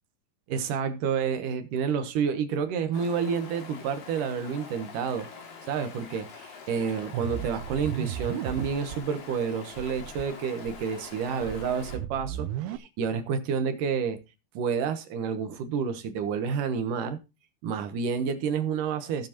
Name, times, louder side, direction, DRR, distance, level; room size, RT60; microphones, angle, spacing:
voice 1, 0.5-5.3 5.7-14.2 14.5-17.2 17.6-19.3, right 6 dB, 65° right, 2.4 m, -29 dB
Stream, 2.9-12.0, left 5 dB, 65° left, 4.0 m, -45 dB
sound 1, 7.1-9.0 9.3-9.4 9.7-10.2 10.6-12.8, right 11 dB, 85° right, 2.6 m, -35 dB
17.0 x 7.0 x 2.9 m
omnidirectional pair, 4.4 m